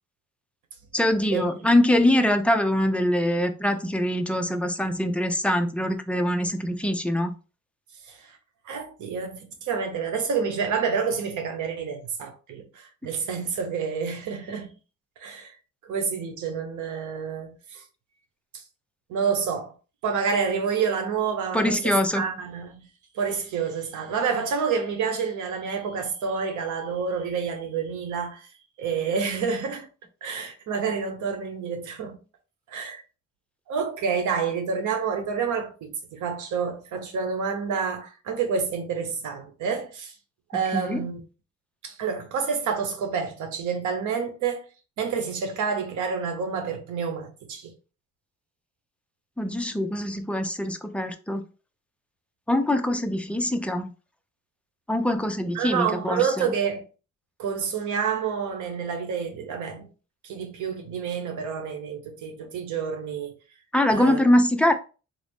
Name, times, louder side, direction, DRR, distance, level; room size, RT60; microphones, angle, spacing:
voice 1, 0.9-7.3 21.5-22.2 40.7-41.0 49.4-51.4 52.5-53.9 54.9-56.5 63.7-64.7, left 1 dB, 5° left, 0.5 m, -23 dB
voice 2, 8.1-8.4 8.6-14.7 15.2-15.6 15.9-17.8 18.5-18.6 19.1-19.7 20.0-22.8 23.1-28.5 28.8-29.9 30.2-32.2 32.7-33.0 33.7-40.1 40.5-41.2 41.8-44.7 45.0-47.7 55.5-56.8 57.4-59.9 60.2-63.3 63.9-64.2, right 6 dB, 85° right, 1.0 m, -28 dB
4.0 x 2.6 x 3.5 m
cardioid pair, 105°, 29 cm